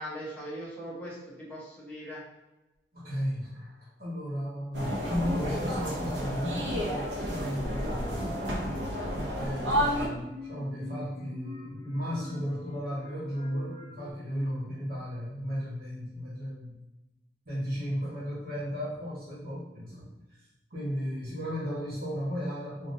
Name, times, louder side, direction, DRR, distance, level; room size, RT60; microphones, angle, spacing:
voice 1, 0.0-2.2, equal, 10° left, -7 dB, 0.8 m, -40 dB
voice 2, 2.9-8.3 9.1-16.7 17.4-20.1 20.4-22.9, equal, 55° right, -10 dB, 1.2 m, -35 dB
sound 1, 4.7-10.1, equal, 90° right, 0.7 m, -31 dB
sound 2, 6.5-14.1, left 1 dB, 40° left, 1.4 m, -45 dB
3.6 x 2.4 x 2.6 m, 1.0 s
head